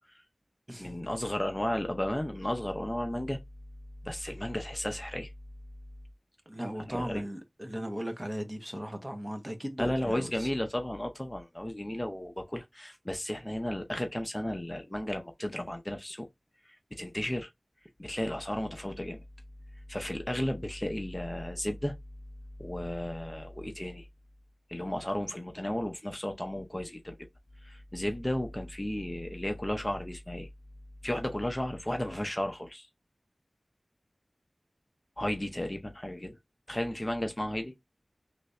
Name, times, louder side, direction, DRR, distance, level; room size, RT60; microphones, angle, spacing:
voice 1, 0.8-3.4 4.0-5.3 6.8-7.2 9.8-16.3 16.9-17.5 18.0-19.2 19.9-21.9 22.6-24.1 24.7-27.2 27.6-30.5 31.0-32.9 35.2-36.4 36.7-37.7, left 1 dB, 20° left, 0.6 m, -34 dB
voice 2, 6.5-10.5, equal, 20° right, 0.9 m, -37 dB
3.2 x 2.6 x 3.1 m
wide cardioid pair, 60°, 0 cm